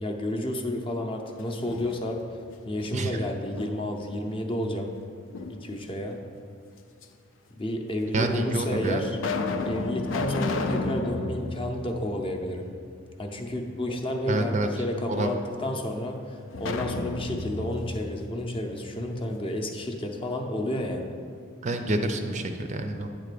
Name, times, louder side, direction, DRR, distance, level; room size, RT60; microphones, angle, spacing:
voice 1, 0.0-2.2 2.6-4.9 5.5-6.2 7.6-9.2 9.6-12.7 13.2-21.1, left 1 dB, 25° left, 3 dB, 0.6 m, -31 dB
sound 1, 1.4-2.4 2.8-4.1 5.3-6.1 7.0-7.1 8.0-8.1 8.7-12.8 13.1-13.2 16.5-19.3, left 3 dB, 70° left, 0.5 m, -33 dB
voice 2, 8.1-9.0 14.3-14.7 15.1-15.3 21.6-23.1, right 2 dB, 35° right, 6 dB, 0.5 m, -27 dB
9.1 x 3.8 x 6.7 m, 2.3 s
head